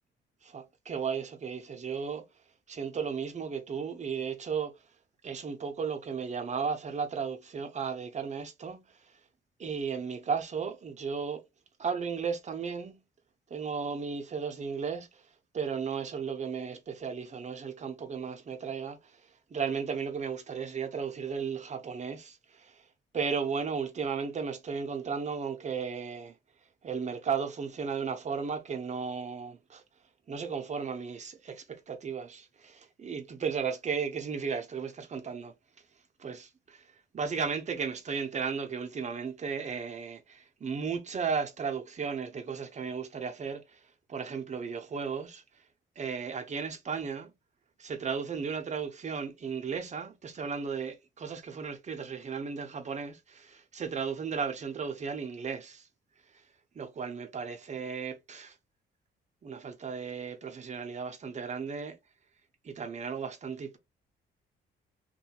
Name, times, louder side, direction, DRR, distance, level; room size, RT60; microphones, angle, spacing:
voice 1, 0.4-2.2 2.7-4.7 5.2-9.1 9.6-11.4 11.8-13.0 13.5-15.2 15.5-22.9 23.1-26.3 26.8-29.8 30.3-35.5 36.2-43.8 44.1-45.4 46.0-47.3 47.8-55.9 56.3-56.4 56.7-58.6 59.4-62.0 62.6-63.8, right 6 dB, 35° right, 0.6 m, -35 dB
2.6 x 2.3 x 2.8 m
cardioid pair, 90°, 20 cm